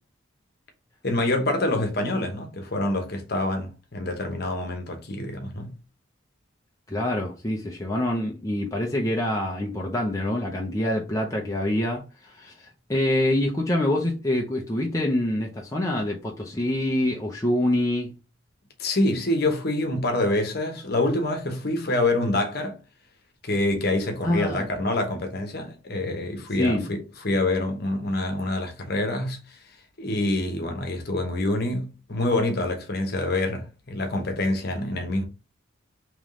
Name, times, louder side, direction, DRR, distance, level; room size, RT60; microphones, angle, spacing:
voice 1, 1.0-5.7 18.8-22.8 23.4-29.6 30.0-35.2, left 2 dB, 50° left, 1.0 m, -26 dB
voice 2, 6.9-18.1 24.2-24.7 26.6-26.8, left 1 dB, 15° left, 0.6 m, -26 dB
3.6 x 3.1 x 3.7 m
head